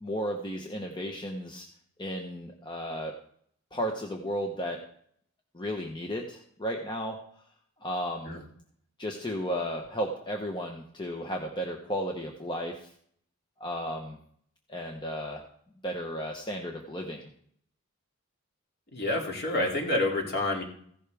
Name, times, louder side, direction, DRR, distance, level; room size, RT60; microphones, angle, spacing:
voice 1, 0.0-1.6 2.0-3.1 3.7-4.8 5.5-7.2 7.8-8.4 9.0-12.9 13.6-14.2 14.7-15.4 15.8-17.3, equal, 20° left, 2 dB, 1.0 m, -34 dB
voice 2, 18.9-20.6, left 2 dB, 45° left, 0 dB, 2.7 m, -28 dB
15.5 x 11.5 x 3.5 m, 0.63 s
head